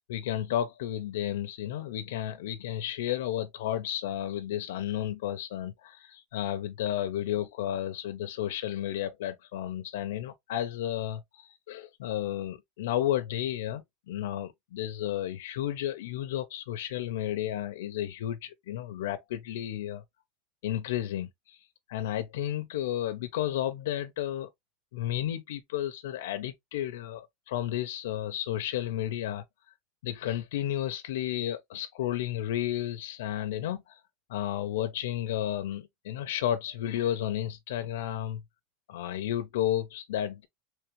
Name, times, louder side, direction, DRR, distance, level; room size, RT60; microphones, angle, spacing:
voice 1, 0.0-20.0 20.6-24.5 24.9-29.4 30.0-34.0 34.3-38.4 38.9-40.5, left 12 dB, 85° left, 0.4 m, -32 dB
3.5 x 3.1 x 3.0 m
supercardioid pair, 180°, 0 cm